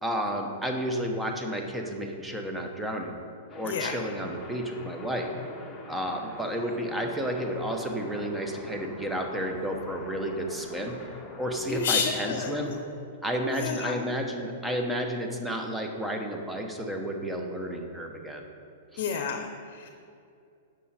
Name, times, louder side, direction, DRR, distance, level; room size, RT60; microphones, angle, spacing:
voice 1, 0.0-3.2 3.6-5.3 5.9-11.0 11.4-12.8 13.2-18.4 18.9-19.0, equal, 5° right, 2 dB, 0.9 m, -31 dB
sound 1, 3.5-12.8, left 2 dB, 10° left, 1.2 m, -45 dB
voice 2, 3.6-3.9 11.7-12.8 13.5-14.0 19.0-19.9, left 6 dB, 55° left, 5 dB, 0.7 m, -30 dB
8.4 x 6.3 x 4.2 m, 2.5 s
hypercardioid pair, 135°, 0 cm